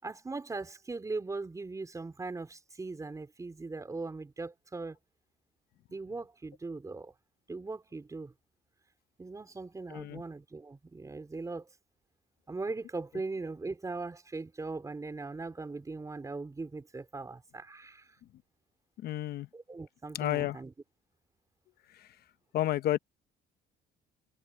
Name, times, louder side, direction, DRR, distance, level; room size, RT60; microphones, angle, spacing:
voice 1, 0.0-5.0 5.9-7.1 7.5-8.3 9.2-11.7 12.5-18.1 19.5-20.7, right 3 dB, 20° right, 3.9 m, -39 dB
voice 2, 9.9-10.2 19.0-19.5 20.1-20.6 21.9-22.1 22.5-23.0, left 13 dB, 65° left, 0.9 m, -31 dB
cardioid pair, 110°, 17 cm